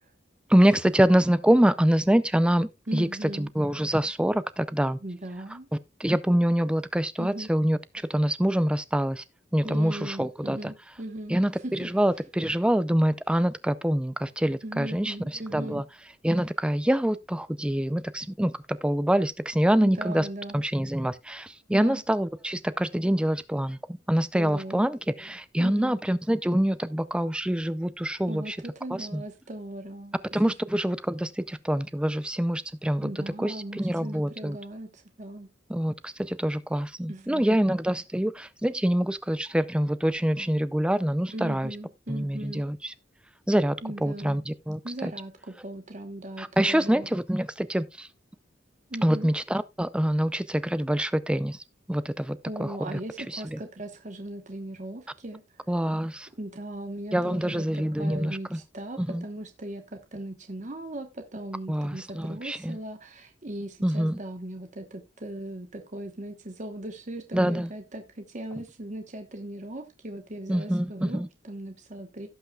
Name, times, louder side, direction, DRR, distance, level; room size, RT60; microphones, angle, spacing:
voice 1, 0.5-5.0 5.7-7.8 8.1-9.2 9.5-10.7 11.3-15.8 16.2-20.3 20.5-28.6 28.9-29.2 30.3-34.6 35.7-41.8 42.1-42.9 43.5-45.1 46.4-48.1 49.0-53.0 53.3-53.6 55.7-56.3 57.1-58.6 59.0-59.2 61.7-62.8 63.8-64.2 67.3-67.7 70.5-71.3, equal, 5° right, 0.4 m, -25 dB
voice 2, 2.9-3.5 5.0-5.7 7.2-7.5 9.6-11.3 11.6-11.9 14.6-15.8 19.8-20.6 21.7-22.0 24.3-24.9 25.6-26.0 28.3-30.5 33.0-35.5 37.1-37.6 41.3-42.6 43.8-44.4 44.8-47.1 48.9-49.3 52.4-55.6 56.4-72.3, right 1 dB, 40° right, 1.1 m, -38 dB
17.0 x 5.7 x 2.3 m
head